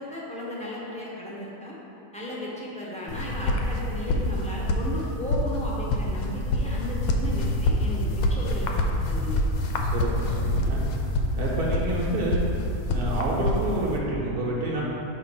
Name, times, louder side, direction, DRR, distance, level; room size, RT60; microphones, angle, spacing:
voice 1, 0.0-1.8 2.1-9.6, equal, 5° left, -6 dB, 0.7 m, -35 dB
sound 1, 3.1-14.0, left 1 dB, 80° left, 1.0 m, -26 dB
voice 2, 9.9-10.8 11.4-12.4 12.9-14.8, right 1 dB, 90° right, -5 dB, 1.4 m, -28 dB
5.9 x 3.0 x 5.5 m, 2.9 s
omnidirectional pair, 1.6 m